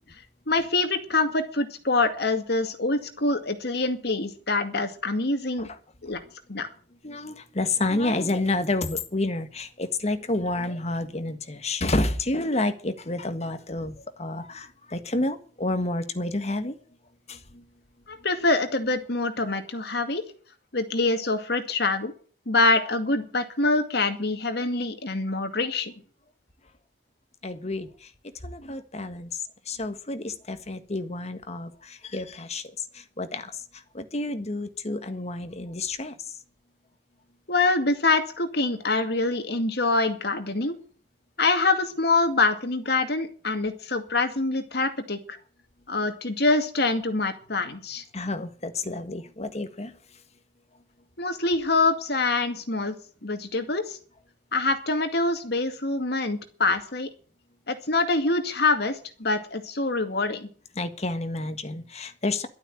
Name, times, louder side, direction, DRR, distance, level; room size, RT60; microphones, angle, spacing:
voice 1, 0.5-5.7 6.0-6.2 6.5-6.7 18.1-20.2 20.7-22.1 22.5-25.9 37.5-40.8 41.4-45.4 45.9-48.0 51.2-53.0 53.2-54.0 54.5-57.1 57.7-60.5, left 3 dB, 65° left, 7 dB, 2.2 m, -25 dB
voice 2, 7.0-16.8 17.3-17.6 27.4-27.9 28.4-29.3 29.7-32.6 32.9-33.5 33.9-36.1 48.1-49.9 60.8-62.5, left 2 dB, 35° left, 9 dB, 1.6 m, -29 dB
12.0 x 8.9 x 8.1 m, 0.41 s
head